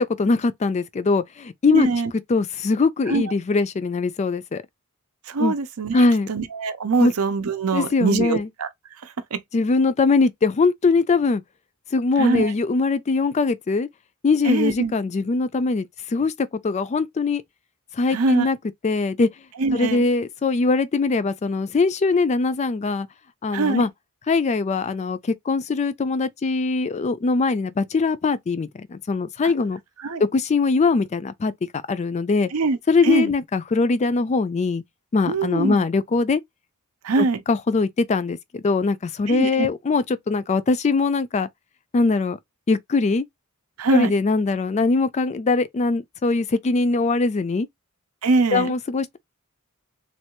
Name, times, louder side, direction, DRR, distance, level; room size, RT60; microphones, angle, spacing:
voice 1, 0.0-1.9 2.3-4.6 5.4-5.5 5.9-6.3 7.0-7.1 7.7-8.5 9.5-11.4 11.9-13.9 14.2-17.4 17.9-18.6 18.8-19.3 19.7-23.1 23.4-23.9 24.3-29.8 30.2-32.5 32.9-34.8 35.1-36.4 37.2-41.5 41.9-42.4 42.7-43.2 43.9-47.7 48.5-49.2, left 3 dB, 30° left, 0.3 m, -21 dB
voice 2, 1.7-2.1 3.1-3.3 5.3-8.7 9.0-9.4 12.2-12.5 14.4-14.9 18.1-18.5 19.6-20.1 23.5-23.9 30.0-30.2 32.5-32.8 33.0-33.3 35.3-35.8 37.0-37.4 39.3-39.7 43.8-44.1 48.2-48.7, right 3 dB, 75° right, 0.6 m, -23 dB
3.2 x 2.3 x 2.9 m
head